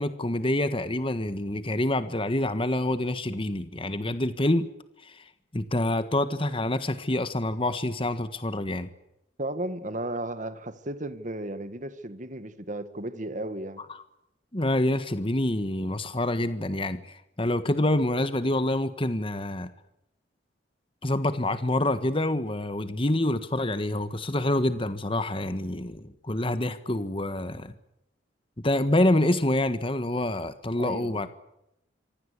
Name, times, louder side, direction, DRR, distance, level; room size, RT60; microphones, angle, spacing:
voice 1, 0.0-4.7 5.0-5.2 5.5-8.9 14.5-19.7 21.0-27.7 28.6-31.3, left 1 dB, 30° left, 1.5 m, -27 dB
voice 2, 9.4-13.8 30.8-31.3, right 1 dB, 40° right, 1.8 m, -34 dB
26.0 x 24.5 x 8.4 m
head